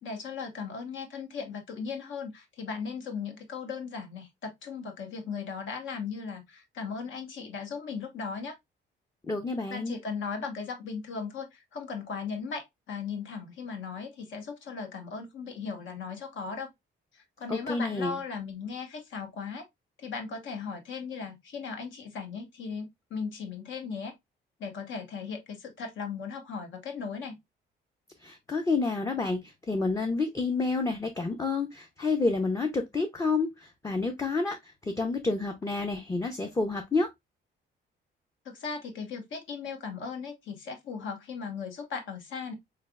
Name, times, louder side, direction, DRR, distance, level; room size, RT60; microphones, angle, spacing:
voice 1, 0.0-8.6 9.7-16.7 17.1-19.7 20.0-24.1 24.6-27.4 38.4-42.5, left 5 dB, 75° left, 1.1 m, -37 dB
voice 2, 9.3-10.0 17.5-18.2 28.2-37.1, left 3 dB, 15° left, 0.5 m, -29 dB
3.9 x 3.2 x 2.2 m
cardioid pair, 90°, 20 cm